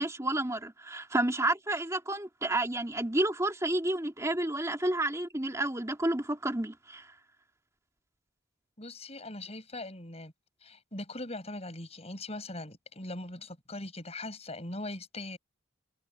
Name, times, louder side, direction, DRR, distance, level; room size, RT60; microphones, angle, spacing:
voice 1, 0.0-7.1, right 1 dB, 15° right, 2.7 m, -30 dB
voice 2, 8.8-10.3 10.6-15.4, left 2 dB, 35° left, 6.3 m, -40 dB
head